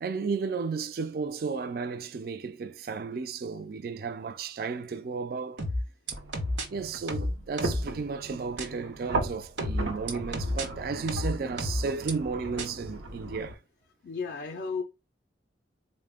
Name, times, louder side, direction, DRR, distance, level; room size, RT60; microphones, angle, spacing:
voice 1, 0.0-5.6 6.7-13.6, right 5 dB, 50° right, 0.3 m, -33 dB
sound 1, 5.6-6.7 7.1-7.9 8.6-8.7 9.6-10.7 11.1-12.1 12.6-12.7, left 1 dB, 70° right, 1.0 m, -30 dB
sound 2, 6.1-13.5, right 2 dB, 85° right, 0.7 m, -37 dB
voice 2, 14.0-14.8, left 5 dB, 55° left, 0.3 m, -33 dB
4.1 x 2.1 x 3.4 m
head